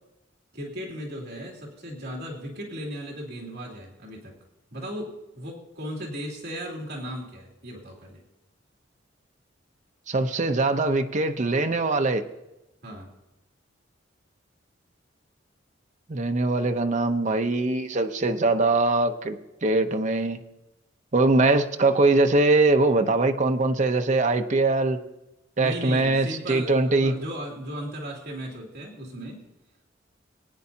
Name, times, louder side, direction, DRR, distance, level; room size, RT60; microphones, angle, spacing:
voice 1, 0.5-4.3 4.7-8.2 12.8-13.1 25.6-29.4, equal, 60° right, -1 dB, 2.7 m, -36 dB
voice 2, 10.1-12.2 16.1-20.4 21.1-25.0 25.6-27.1, right 2 dB, 40° right, 6 dB, 0.7 m, -22 dB
21.5 x 9.7 x 2.8 m, 0.95 s
head